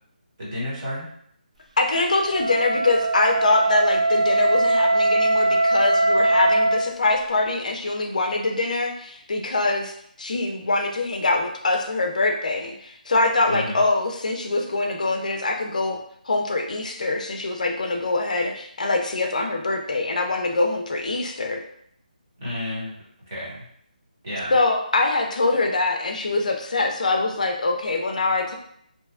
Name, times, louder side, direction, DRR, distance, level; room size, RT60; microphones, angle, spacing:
voice 1, 0.4-1.1 13.5-13.8 22.4-22.9 23.3-23.7 24.2-24.5, left 1 dB, 25° right, -8 dB, 0.8 m, -31 dB
voice 2, 1.8-9.9 10.2-16.0 16.3-21.6 24.5-28.5, left 2 dB, 55° left, 3 dB, 0.4 m, -23 dB
Wind instrument woodwind instrument, 2.3-6.9, right 2 dB, 50° right, 0.3 m, -21 dB
2.6 x 2.2 x 2.3 m, 0.68 s
hypercardioid pair, 180°, 5 cm